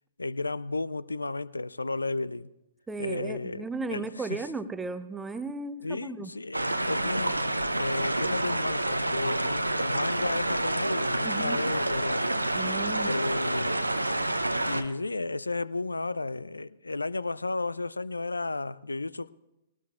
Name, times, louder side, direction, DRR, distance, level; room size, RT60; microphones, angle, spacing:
voice 1, 0.2-2.5 3.0-4.4 5.8-12.3 13.0-13.8 14.6-19.3, left 3 dB, 80° left, 0.4 m, -33 dB
voice 2, 2.9-6.3 11.2-11.6 12.5-13.2, right 3 dB, 10° right, 0.7 m, -35 dB
sound 1, 6.5-14.8, right 1 dB, 85° right, 0.6 m, -28 dB
20.5 x 18.5 x 2.5 m
figure-of-eight pair, 115°, 0 cm